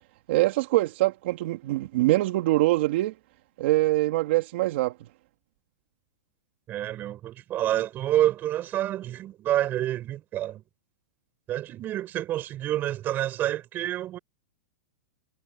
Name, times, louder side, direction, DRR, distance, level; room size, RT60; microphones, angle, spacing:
voice 1, 0.3-3.1 3.6-4.9, right 18 dB, 55° right, 2.4 m, -23 dB
voice 2, 6.7-10.6 11.5-14.2, right 13 dB, 25° right, 5.9 m, -28 dB
hypercardioid pair, 150°, 7 cm